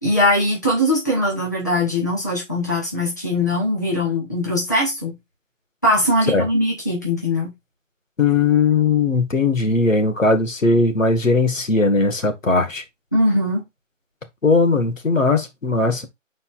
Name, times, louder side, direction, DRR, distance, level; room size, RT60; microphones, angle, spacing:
voice 1, 0.0-5.2 5.8-7.5 13.1-13.6, left 1 dB, 15° left, 1.0 m, -21 dB
voice 2, 8.2-12.8 14.4-16.1, left 3 dB, 80° left, 1.9 m, -18 dB
10.5 x 4.4 x 2.5 m
figure-of-eight pair, 175°, 38 cm